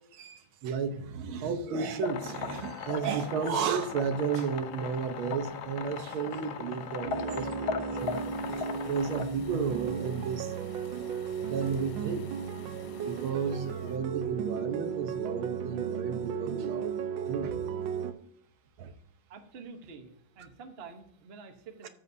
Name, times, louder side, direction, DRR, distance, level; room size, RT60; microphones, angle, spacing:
voice 1, 0.1-8.2 8.9-10.5 11.4-12.2 13.0-17.0 17.3-17.6 18.8-18.9 21.8-21.9, right 6 dB, 85° right, 8 dB, 1.8 m, -33 dB
sound 1, 2.0-9.3, left 6 dB, 60° left, 1.2 m, -38 dB
sound 2, 7.0-18.1, right 7 dB, 70° right, 1.4 m, -35 dB
sound 3, 8.0-14.0, left 7 dB, 80° left, 1.6 m, -52 dB
voice 2, 19.3-21.9, right 4 dB, 40° right, 5 dB, 1.0 m, -48 dB
13.0 x 7.6 x 2.7 m, 0.67 s
omnidirectional pair, 2.2 m